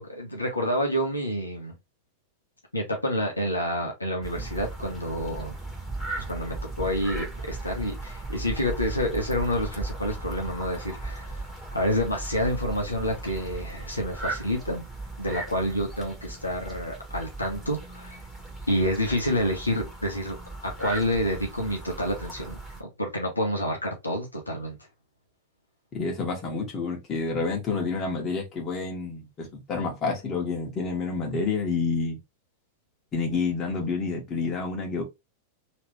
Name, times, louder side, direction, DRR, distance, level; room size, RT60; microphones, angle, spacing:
voice 1, 0.0-1.7 2.7-5.6 6.2-14.8 15.2-18.2 18.7-20.4 20.6-24.8, equal, 85° left, 1.1 m, -28 dB
sound 1, 4.2-22.8, right 2 dB, ahead, 1.6 m, -37 dB
voice 2, 25.9-32.2 33.1-35.0, left 4 dB, 30° left, 1.7 m, -29 dB
3.2 x 3.1 x 3.3 m
figure-of-eight pair, 90°, 0 cm